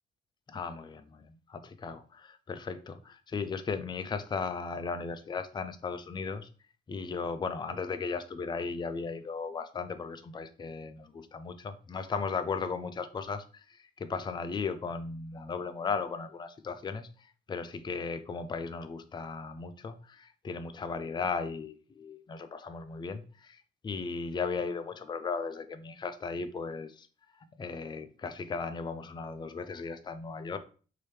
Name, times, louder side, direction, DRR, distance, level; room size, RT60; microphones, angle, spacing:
voice 1, 0.5-6.5 6.9-27.1 27.6-30.6, left 5 dB, 20° left, 9 dB, 0.4 m, -36 dB
3.0 x 2.8 x 3.3 m, 0.38 s
cardioid pair, 90°, 20 cm